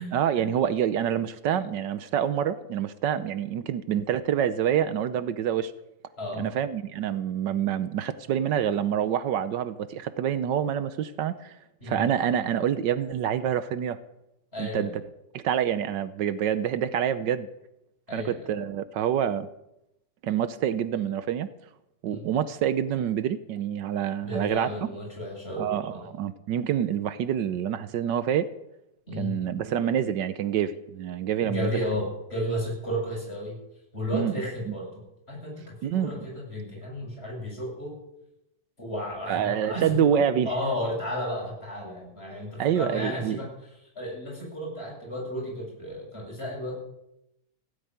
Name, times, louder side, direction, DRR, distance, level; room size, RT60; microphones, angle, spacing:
voice 1, 0.1-5.7 6.4-11.5 11.8-14.0 14.6-14.9 15.3-17.5 18.1-19.5 20.2-21.5 22.0-24.7 25.6-28.5 29.2-31.7 34.1-34.3 34.7-34.8 35.8-36.2 39.3-40.5 42.6-43.4, right 9 dB, 75° right, 13 dB, 1.4 m, -27 dB
voice 2, 6.2-6.5 11.8-12.0 14.5-15.0 18.1-18.4 22.1-22.3 24.2-26.1 29.1-29.4 31.4-33.6 33.9-38.0 38.8-40.1 40.4-43.5 44.0-46.8, left 1 dB, 35° left, -2 dB, 7.5 m, -33 dB
16.5 x 9.0 x 9.5 m, 0.85 s
omnidirectional pair, 2.0 m